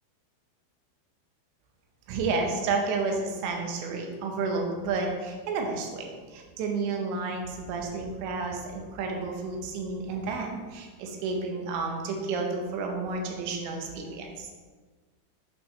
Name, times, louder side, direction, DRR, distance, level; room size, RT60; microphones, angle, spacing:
voice 1, 2.1-14.5, right 4 dB, 75° right, 2 dB, 2.9 m, -31 dB
8.4 x 6.3 x 3.2 m, 1.4 s
omnidirectional pair, 5.9 m